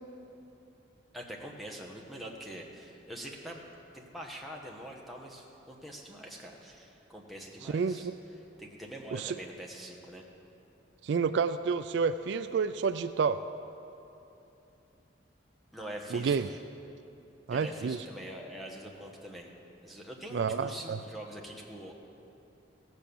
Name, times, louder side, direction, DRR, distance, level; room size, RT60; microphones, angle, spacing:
voice 1, 1.1-3.6 3.9-8.1 8.6-10.2 15.7-16.6 17.5-19.5 19.8-21.9, right 1 dB, ahead, -2 dB, 1.1 m, -44 dB
voice 2, 7.6-8.1 9.1-9.4 11.0-13.4 16.1-16.5 17.5-18.0 20.3-21.0, right 5 dB, 60° right, 11 dB, 0.3 m, -29 dB
16.0 x 8.0 x 6.9 m, 2.9 s
head